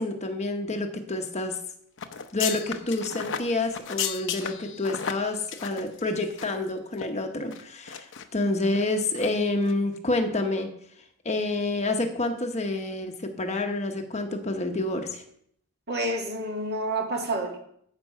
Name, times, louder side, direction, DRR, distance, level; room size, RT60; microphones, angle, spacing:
voice 1, 0.0-1.6 2.3-10.7 11.2-15.2, left 2 dB, 30° left, 5 dB, 1.0 m, -28 dB
sound 1, 2.0-6.7 6.9-7.1 7.5-8.2 8.6-8.8 9.1-9.3 9.6-9.7, left 8 dB, 60° left, 0.8 m, -34 dB
voice 2, 15.9-17.6, right 1 dB, 50° right, 1 dB, 2.0 m, -29 dB
13.5 x 5.3 x 5.7 m, 0.68 s
head